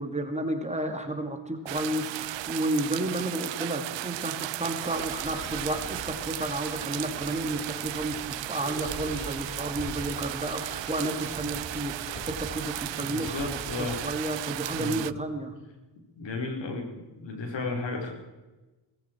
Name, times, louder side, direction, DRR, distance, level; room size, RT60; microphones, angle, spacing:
voice 1, 0.0-15.5, right 1 dB, 15° right, 5 dB, 2.3 m, -32 dB
sound 1, 1.7-15.1, right 16 dB, 80° right, 0.6 m, -35 dB
sound 2, 4.8-14.9, left 2 dB, 45° left, 4.8 m, -43 dB
voice 2, 13.0-14.0 14.7-15.0 16.2-16.9 17.2-18.1, left 3 dB, 80° left, 2 dB, 4.2 m, -33 dB
18.5 x 15.5 x 4.5 m, 1.1 s
cardioid pair, 100°, 43 cm